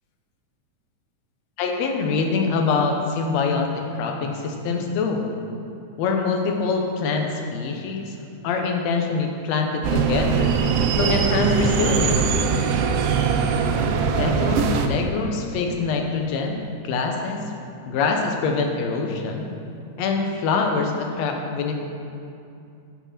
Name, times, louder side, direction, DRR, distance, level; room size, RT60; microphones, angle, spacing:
voice 1, 1.6-5.2 6.0-8.2 8.4-10.6 11.0-12.3 14.1-17.4 17.9-19.5 20.0-21.7, left 4 dB, 75° left, 3 dB, 1.9 m, -24 dB
sound 1, 9.8-14.9, right 6 dB, 85° right, 1.4 m, -21 dB
8.3 x 5.9 x 5.8 m, 2.6 s
omnidirectional pair, 3.4 m